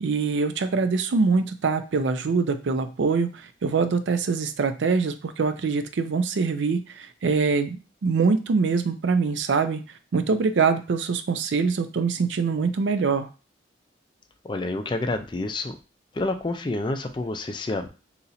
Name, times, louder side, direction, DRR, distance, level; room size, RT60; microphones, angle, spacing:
voice 1, 0.0-13.3, right 4 dB, 75° right, 10 dB, 0.4 m, -24 dB
voice 2, 14.4-15.8 16.1-17.9, left 2 dB, 25° left, 7 dB, 0.4 m, -28 dB
2.9 x 2.6 x 4.1 m, 0.32 s
head